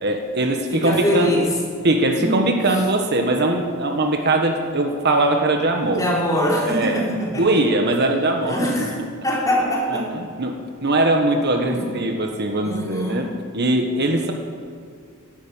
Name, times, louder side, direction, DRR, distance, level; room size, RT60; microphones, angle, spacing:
voice 1, 0.0-1.3 1.8-6.0 6.7-7.0 7.3-8.9 9.9-13.3 13.5-14.3, right 2 dB, 50° right, 4 dB, 1.5 m, -21 dB
voice 2, 0.7-1.5 2.2-2.8 6.0-7.6 8.4-10.1 11.6-11.9 12.6-13.2, equal, 15° left, -3 dB, 3.7 m, -23 dB
17.5 x 10.5 x 7.2 m, 2.3 s
head